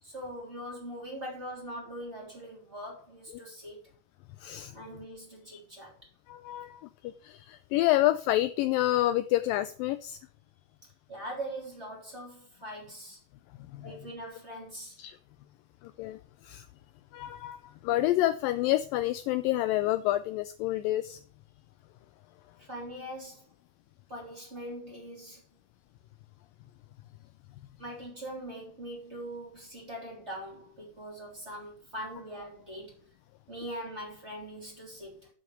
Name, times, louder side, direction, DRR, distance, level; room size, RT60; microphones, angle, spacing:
voice 1, 0.0-3.8 4.7-5.9 11.1-13.2 13.8-15.0 22.6-23.4 24.1-25.4 27.8-33.0 33.5-35.3, right 1 dB, 20° right, 3.6 m, -42 dB
voice 2, 4.4-4.7 6.3-10.2 13.7-14.0 15.0-15.2 16.0-16.2 16.4-16.6 17.1-21.2, left 15 dB, 80° left, 2.1 m, -28 dB
7.8 x 6.5 x 6.8 m
omnidirectional pair, 4.3 m